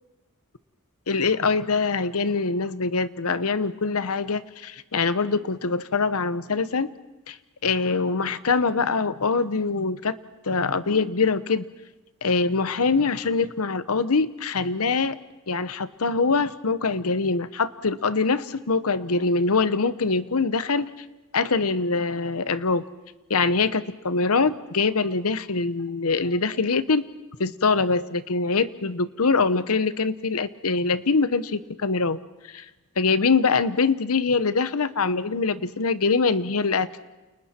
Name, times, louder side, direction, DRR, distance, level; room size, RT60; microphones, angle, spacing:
voice 1, 1.1-6.9 7.3-7.4 7.6-10.2 10.4-11.7 12.2-15.2 15.5-20.9 21.3-22.8 23.3-27.0 27.4-32.2 32.5-32.6 33.0-36.9, left 4 dB, 85° left, 14 dB, 0.9 m, -23 dB
29.5 x 29.0 x 4.4 m, 1.1 s
head